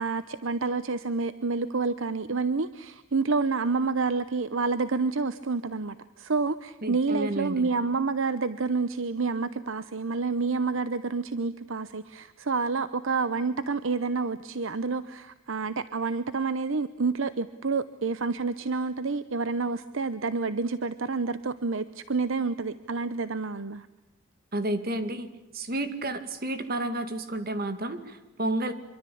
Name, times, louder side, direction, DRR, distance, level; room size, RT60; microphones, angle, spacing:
voice 1, 0.0-23.9, right 4 dB, 65° right, 14 dB, 0.8 m, -28 dB
voice 2, 6.8-7.7 24.5-25.3 25.5-28.7, right 1 dB, 45° right, 10 dB, 2.3 m, -31 dB
26.0 x 24.0 x 8.6 m, 1.0 s
head